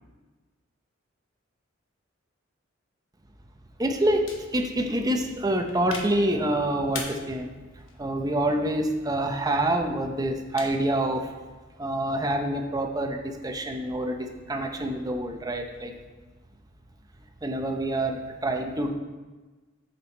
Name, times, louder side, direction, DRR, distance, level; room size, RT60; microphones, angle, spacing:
voice 1, 3.8-7.5 8.0-11.3 11.8-15.9 17.4-18.9, right 1 dB, 20° right, 4 dB, 0.7 m, -27 dB
sound 1, 4.3-11.8, left 4 dB, 70° left, 1.0 m, -44 dB
6.9 x 6.8 x 4.4 m, 1.3 s
head